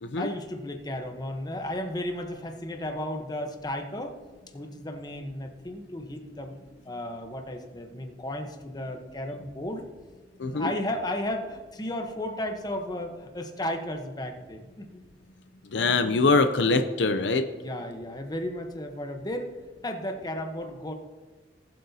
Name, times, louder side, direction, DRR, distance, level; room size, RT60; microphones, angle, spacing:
voice 1, 0.2-4.2 4.5-6.5 6.8-9.9 10.4-15.0 17.5-19.5 19.8-20.9, left 1 dB, 20° left, 5 dB, 1.0 m, -34 dB
voice 2, 10.4-10.7 15.7-17.4, left 3 dB, 70° left, 8 dB, 0.6 m, -23 dB
19.0 x 7.8 x 2.8 m, 1.3 s
head